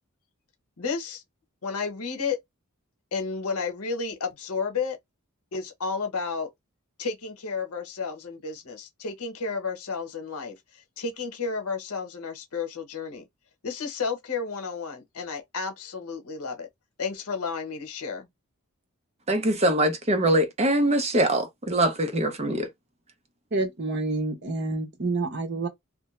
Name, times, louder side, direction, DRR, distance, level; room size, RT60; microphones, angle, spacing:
voice 1, 0.8-1.2 1.6-2.4 3.1-5.0 5.5-6.5 7.0-10.6 11.0-13.2 13.6-16.7 17.0-18.3, left 5 dB, 85° left, 0.9 m, -32 dB
voice 2, 19.3-22.7, right 1 dB, 30° right, 0.6 m, -23 dB
voice 3, 23.5-25.7, right 3 dB, 50° right, 0.9 m, -28 dB
2.6 x 2.1 x 3.1 m
head